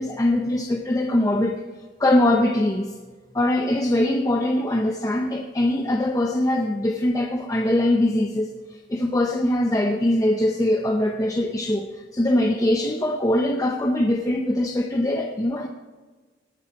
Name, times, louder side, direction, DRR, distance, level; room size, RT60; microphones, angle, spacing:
voice 1, 0.0-1.6 2.0-2.9 3.3-15.7, left 1 dB, 20° left, 3 dB, 0.7 m, -22 dB
19.0 x 8.8 x 4.3 m, 1.4 s
head